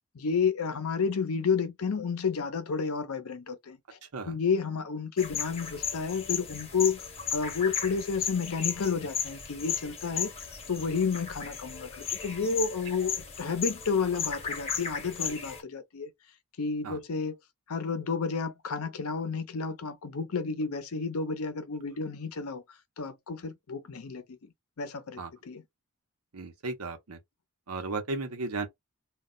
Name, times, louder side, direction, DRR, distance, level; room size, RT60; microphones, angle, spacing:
voice 1, 0.1-3.8 4.3-7.0 7.3-10.3 10.7-16.1 16.6-17.4 17.7-22.6 23.0-24.4 24.8-25.6, left 5 dB, 75° left, 0.6 m, -31 dB
sound 1, 5.2-15.6, left 7 dB, 30° left, 0.8 m, -35 dB
voice 2, 26.3-27.2 27.7-28.7, right 3 dB, 85° right, 0.8 m, -35 dB
2.3 x 2.1 x 3.8 m
head